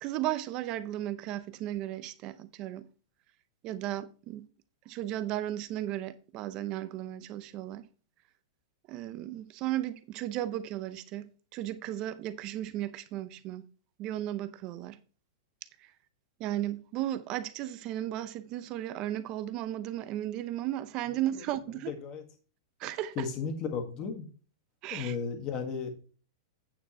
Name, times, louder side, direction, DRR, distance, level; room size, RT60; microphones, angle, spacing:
voice 1, 0.0-2.9 3.6-4.5 4.9-7.9 8.9-13.6 14.0-15.0 16.4-21.9 22.8-23.1 24.8-25.1, right 13 dB, 30° right, 0.7 m, -35 dB
voice 2, 21.9-22.2 23.2-24.3 24.9-25.9, left 5 dB, 25° left, 1.8 m, -34 dB
9.1 x 6.2 x 4.3 m
supercardioid pair, 165°, 2 cm